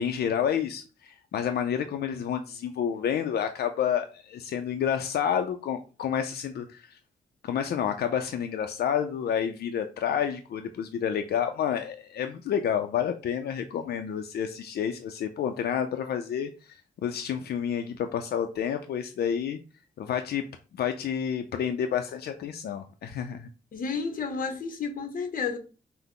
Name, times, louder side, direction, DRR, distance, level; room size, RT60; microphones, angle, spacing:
voice 1, 0.0-7.0 7.4-19.6 20.0-20.4 20.8-23.5, left 8 dB, 90° left, 0.4 m, -29 dB
voice 2, 23.7-25.6, left 5 dB, 60° left, 0.8 m, -31 dB
5.7 x 2.0 x 3.6 m
wide cardioid pair, 145°, 16 cm